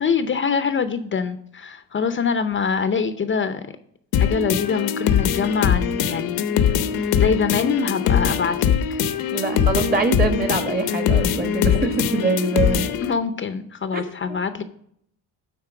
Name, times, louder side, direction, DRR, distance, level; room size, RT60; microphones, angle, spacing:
voice 1, 0.0-3.6 4.2-6.5 7.0-9.0 13.0-14.6, left 6 dB, 35° left, 10 dB, 0.6 m, -24 dB
sound 1, 4.1-13.1, left 8 dB, 80° left, 0.8 m, -22 dB
voice 2, 9.3-12.9 13.9-14.0, right 3 dB, 25° right, 8 dB, 1.3 m, -23 dB
9.7 x 4.2 x 5.8 m, 0.68 s
cardioid pair, 120°, 36 cm